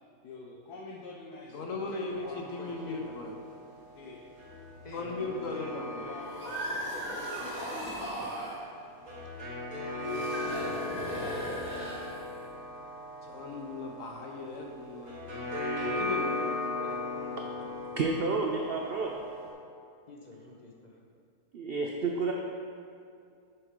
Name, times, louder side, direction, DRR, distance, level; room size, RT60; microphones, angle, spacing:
voice 1, 0.2-2.5 3.9-4.2 6.0-6.9, left 3 dB, 85° left, -3 dB, 1.3 m, -46 dB
voice 2, 1.5-3.4 4.9-6.1 13.2-16.5, left 3 dB, 65° left, 1 dB, 1.2 m, -38 dB
sound 1, 2.1-19.5, left 2 dB, 55° right, 2.4 m, -38 dB
voice 3, 2.6-3.2 4.8-5.7 16.8-17.9 20.1-21.0, left 2 dB, 35° left, -2 dB, 0.9 m, -48 dB
sound 2, 6.2-8.6 10.0-12.4, right 1 dB, 5° right, 1.8 m, -37 dB
voice 4, 17.9-19.1 21.5-22.3, right 4 dB, 75° right, 1 dB, 0.5 m, -30 dB
7.7 x 6.3 x 3.7 m, 2.4 s
omnidirectional pair, 1.6 m